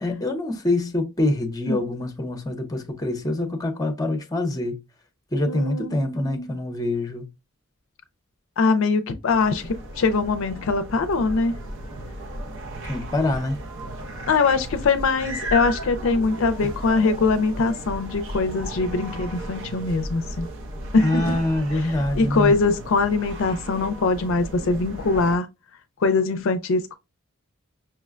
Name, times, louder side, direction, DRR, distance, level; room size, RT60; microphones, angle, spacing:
voice 1, 0.0-4.8 5.3-7.3 12.8-13.6 21.0-22.5, left 1 dB, 15° left, 0.7 m, -25 dB
voice 2, 5.5-6.6 8.6-11.6 14.3-20.5 20.9-21.4 21.7-25.5 26.0-26.9, left 4 dB, 65° left, 0.4 m, -22 dB
sound 1, 9.3-25.4, right 1 dB, 65° right, 0.6 m, -35 dB
5.6 x 2.1 x 2.4 m
head